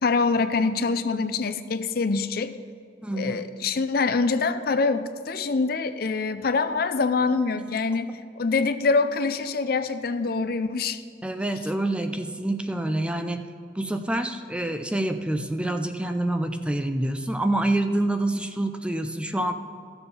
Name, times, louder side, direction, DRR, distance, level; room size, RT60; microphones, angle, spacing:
voice 1, 0.0-2.5 3.1-11.0, left 4 dB, 55° left, 11 dB, 0.5 m, -25 dB
voice 2, 3.0-3.4 11.2-13.5 13.8-19.5, right 1 dB, 5° right, 7 dB, 0.5 m, -27 dB
13.5 x 7.0 x 5.5 m, 2.3 s
head